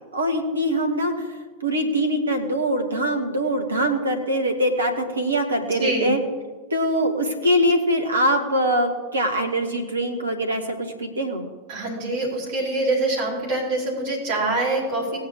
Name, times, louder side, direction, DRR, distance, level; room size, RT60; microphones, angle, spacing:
voice 1, 0.1-1.3 1.6-6.2 6.7-11.5, equal, 75° right, 5 dB, 1.6 m, -23 dB
voice 2, 5.7-6.1 11.7-15.2, right 2 dB, 45° right, -5 dB, 4.4 m, -25 dB
18.5 x 9.2 x 3.1 m, 1.3 s
figure-of-eight pair, 90°, 0 cm